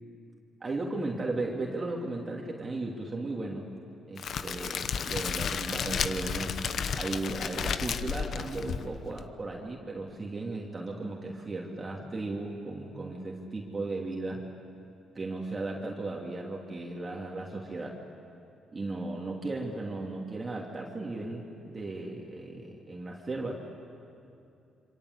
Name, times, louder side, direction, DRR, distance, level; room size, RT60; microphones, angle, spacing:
voice 1, 0.6-3.7 4.1-6.5 6.9-14.4 15.1-18.0 18.7-23.5, right 2 dB, 30° right, -1 dB, 3.0 m, -36 dB
Crackle, 4.2-9.2, left 6 dB, 60° left, 1.1 m, -33 dB
27.0 x 25.5 x 8.3 m, 2.7 s
cardioid pair, 90°, 0 cm